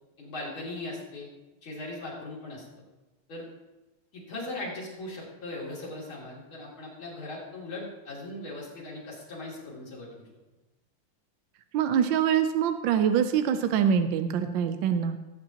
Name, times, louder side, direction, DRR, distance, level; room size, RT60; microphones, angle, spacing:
voice 1, 0.2-1.3 1.6-2.7 3.3-3.5 4.1-10.3, left 2 dB, 65° left, -4 dB, 3.6 m, -39 dB
voice 2, 11.7-15.2, right 8 dB, 75° right, 8 dB, 1.2 m, -24 dB
16.5 x 8.8 x 2.9 m, 1.1 s
omnidirectional pair, 2.4 m